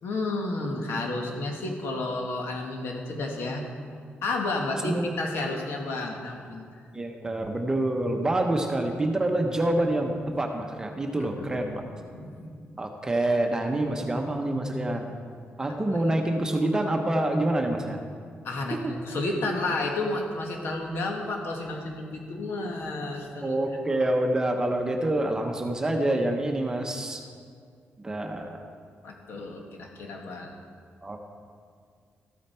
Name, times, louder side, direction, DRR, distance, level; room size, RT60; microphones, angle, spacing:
voice 1, 0.0-3.6 4.2-6.7 11.2-11.7 12.0-12.6 15.9-16.0 16.3-16.4 18.4-23.6 29.0-30.5, left 2 dB, 70° left, 1 dB, 1.6 m, -31 dB
voice 2, 6.9-11.8 12.8-15.1 15.6-18.0 23.4-27.2 28.0-28.6 31.0-31.2, right 1 dB, 15° right, 3 dB, 0.8 m, -27 dB
13.5 x 8.7 x 4.4 m, 2.1 s
wide cardioid pair, 170°, 4 cm